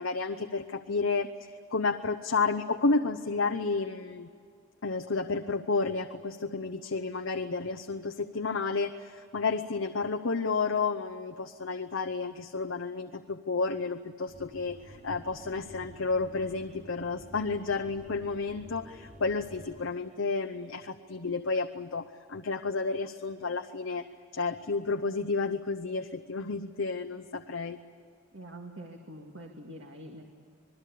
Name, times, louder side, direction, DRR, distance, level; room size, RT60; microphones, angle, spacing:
voice 1, 0.0-4.3 4.8-24.1 24.3-27.8, left 4 dB, 80° left, 5 dB, 0.9 m, -31 dB
sound 1, 14.3-20.0, equal, 40° right, 6.8 m, -51 dB
voice 2, 28.3-30.2, right 1 dB, 65° right, 2 dB, 2.1 m, -45 dB
26.5 x 20.5 x 8.5 m, 2.3 s
head